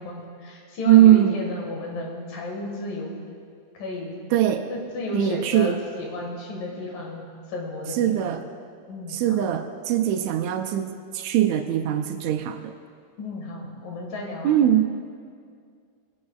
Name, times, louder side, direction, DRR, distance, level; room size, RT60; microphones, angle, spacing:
voice 1, 0.0-3.2 3.7-4.2 4.7-8.3 8.9-9.5 13.2-14.6, left 2 dB, 90° left, -1 dB, 3.4 m, -33 dB
voice 2, 0.9-1.4 4.3-4.6 5.1-5.8 7.9-8.4 9.1-12.7 14.4-14.9, right 12 dB, 85° right, 5 dB, 1.6 m, -20 dB
20.5 x 10.5 x 2.4 m, 2.2 s
omnidirectional pair, 3.8 m